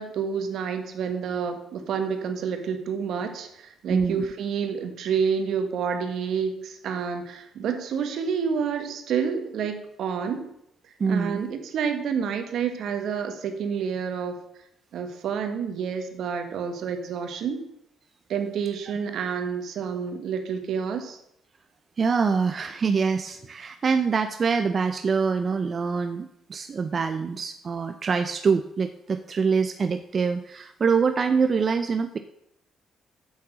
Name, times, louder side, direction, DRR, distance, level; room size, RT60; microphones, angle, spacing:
voice 1, 0.0-10.5 11.1-14.4 14.9-17.7 18.3-21.2, right 6 dB, 75° right, 7 dB, 1.4 m, -29 dB
voice 2, 3.9-4.3 11.0-11.4 22.0-32.2, right 5 dB, 45° right, 8 dB, 0.6 m, -25 dB
8.1 x 7.2 x 6.2 m, 0.78 s
cardioid pair, 90°, 0 cm